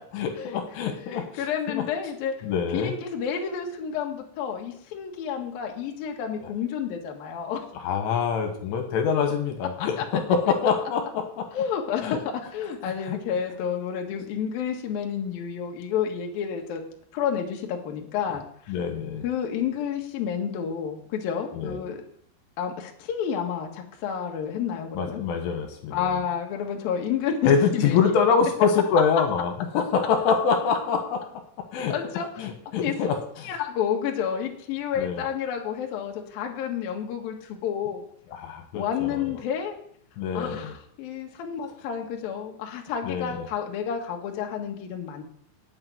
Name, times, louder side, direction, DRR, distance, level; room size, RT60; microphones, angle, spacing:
voice 1, 0.1-1.8 2.4-2.9 7.8-11.5 12.0-12.2 12.8-13.2 18.7-19.2 21.5-21.8 25.0-26.1 27.4-31.2 31.7-31.9 32.4-33.2 35.0-35.2 38.3-39.2 40.2-40.8 43.1-43.5, left 6 dB, 75° left, 4 dB, 3.8 m, -25 dB
voice 2, 1.0-2.5 2.7-7.7 9.8-10.0 11.5-12.2 12.5-16.8 17.1-18.4 19.2-22.0 22.6-25.2 25.9-28.0 31.9-32.4 32.7-32.9 33.4-38.0 38.7-39.8 40.3-40.7 41.0-45.2, left 8 dB, 60° left, 1 dB, 2.8 m, -30 dB
8.8 x 8.7 x 9.4 m, 0.64 s
omnidirectional pair, 5.9 m